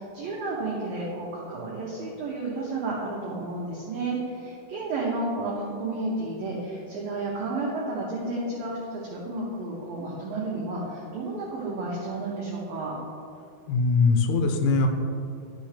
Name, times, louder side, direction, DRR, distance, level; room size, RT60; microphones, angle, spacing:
voice 1, 0.0-12.9, right 2 dB, 90° right, -5 dB, 2.0 m, -32 dB
voice 2, 13.7-14.9, left 4 dB, 85° left, 4 dB, 3.4 m, -21 dB
11.5 x 6.9 x 3.3 m, 2.6 s
omnidirectional pair, 5.7 m